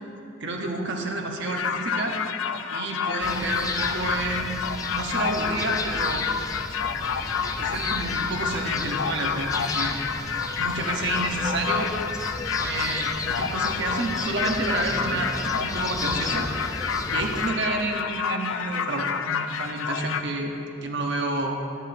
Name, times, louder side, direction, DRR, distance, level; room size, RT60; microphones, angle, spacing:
voice 1, 0.4-2.2 2.7-4.6 4.9-6.2 7.6-10.0 10.6-11.9 12.6-16.5 17.1-20.5 20.8-21.6, right 2 dB, 65° right, 2 dB, 1.0 m, -29 dB
sound 1, 1.5-20.2, left 6 dB, 85° left, 0.4 m, -29 dB
sound 2, 3.2-17.5, left 2 dB, 20° left, 0.5 m, -34 dB
12.0 x 9.8 x 2.7 m, 2.6 s
head